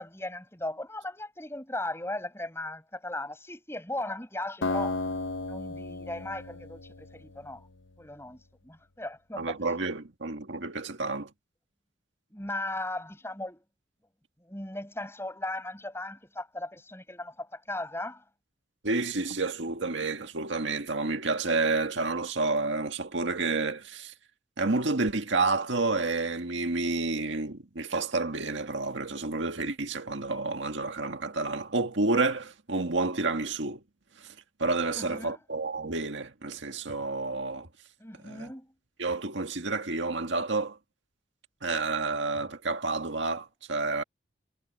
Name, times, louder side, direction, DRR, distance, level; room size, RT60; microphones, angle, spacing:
voice 1, 0.0-5.0 5.4-7.7 8.0-9.5 12.3-13.6 14.4-18.2 34.9-35.4 38.0-38.7, left 1 dB, 15° left, 6.6 m, -37 dB
Acoustic guitar, 4.6-7.8, left 3 dB, 85° left, 0.9 m, -34 dB
voice 2, 9.4-11.3 18.8-24.1 24.6-33.8 34.2-34.3 34.6-37.7 38.2-38.5 39.0-40.8 41.6-44.0, right 3 dB, 75° right, 1.9 m, -30 dB
head